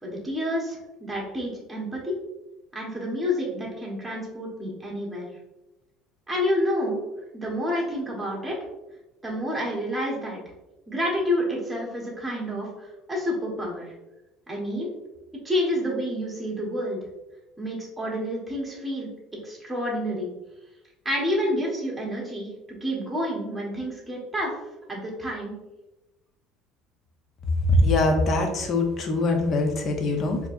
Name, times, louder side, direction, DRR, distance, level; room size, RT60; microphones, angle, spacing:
voice 1, 0.0-2.2 2.7-5.3 6.3-7.0 7.3-8.6 9.2-10.4 10.9-12.7 13.1-13.9 14.5-14.9 15.4-17.0 17.6-19.1 19.4-20.3 21.0-22.5 22.8-24.5 24.9-25.5, equal, 5° right, -3 dB, 1.2 m, -28 dB
voice 2, 27.6-30.4, left 2 dB, 40° left, 4 dB, 0.7 m, -22 dB
4.3 x 2.8 x 2.6 m, 1.0 s
cardioid pair, 135°, 0 cm